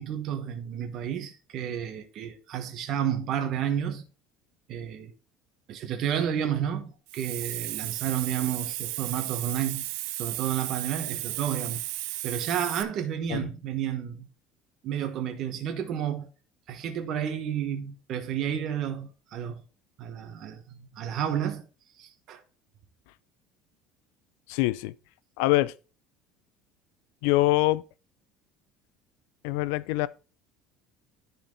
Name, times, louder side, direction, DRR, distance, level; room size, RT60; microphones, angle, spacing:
voice 1, 0.0-4.0 4.7-5.1 5.7-9.8 10.2-11.8 12.2-14.3 14.8-16.3 16.7-19.6 20.0-21.6 22.0-22.4, right 9 dB, 40° right, 1.2 m, -31 dB
Hiss, 7.1-12.8, right 17 dB, 80° right, 0.6 m, -34 dB
voice 2, 24.5-24.9 25.4-25.7 27.2-27.8 29.4-30.1, left 18 dB, 80° left, 0.4 m, -24 dB
10.5 x 4.4 x 4.0 m
cardioid pair, 170°, 0 cm